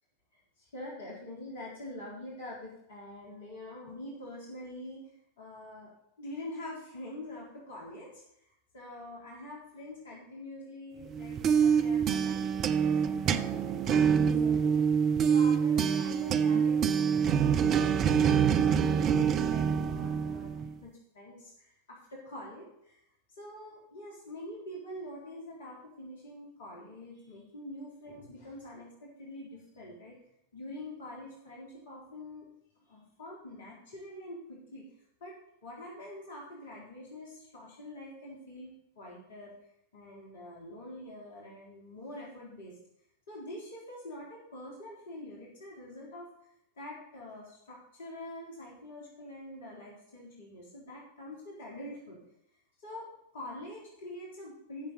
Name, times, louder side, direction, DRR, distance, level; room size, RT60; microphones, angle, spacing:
voice 1, 0.3-5.0 5.4-5.9 6.2-8.2 8.7-14.7 15.3-23.0 23.4-30.2 30.5-32.5 32.9-34.9 35.2-39.5 39.9-42.7 43.3-46.3 46.8-52.2 52.8-54.9, left 1 dB, 60° left, -4 dB, 3.8 m, -45 dB
sound 1, 11.1-20.8, right 7 dB, 30° right, 0.6 m, -26 dB
15.0 x 6.9 x 4.3 m, 0.76 s
figure-of-eight pair, 90°, 0 cm